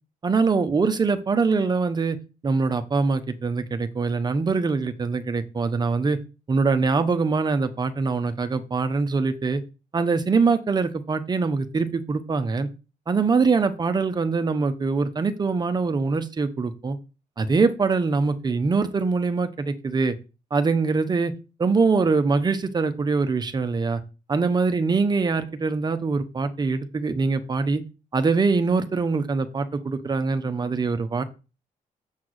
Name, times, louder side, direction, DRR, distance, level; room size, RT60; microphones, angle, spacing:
voice 1, 0.2-2.2 2.4-6.2 6.5-9.6 9.9-12.7 13.1-17.0 17.4-20.1 20.5-21.3 21.6-24.0 24.3-27.8 28.1-31.2, right 4 dB, 30° right, 9 dB, 0.9 m, -23 dB
7.4 x 4.6 x 6.4 m, 0.31 s
cardioid pair, 140°, 14 cm